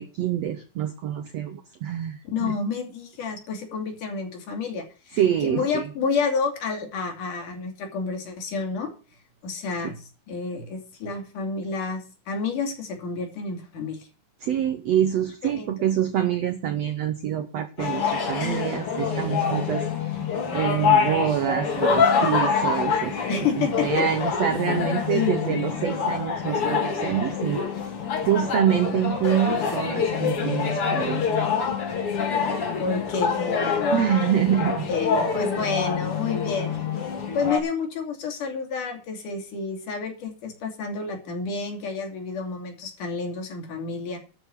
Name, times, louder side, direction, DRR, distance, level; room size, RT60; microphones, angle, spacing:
voice 1, 0.0-2.6 5.2-5.9 9.8-9.9 14.4-20.2 20.5-27.6 28.2-31.5 33.9-34.9, right 10 dB, 80° right, 10 dB, 1.5 m, -26 dB
voice 2, 2.2-8.9 9.4-10.0 10.3-14.1 15.0-15.1 15.4-15.9 23.3-24.0 25.1-25.4 32.8-34.1 34.6-36.7 37.3-44.2, left 5 dB, 60° left, 3 dB, 4.0 m, -30 dB
sound 1, 17.8-37.6, left 6 dB, 40° left, 2.7 m, -25 dB
12.5 x 6.0 x 8.3 m, 0.35 s
omnidirectional pair, 4.3 m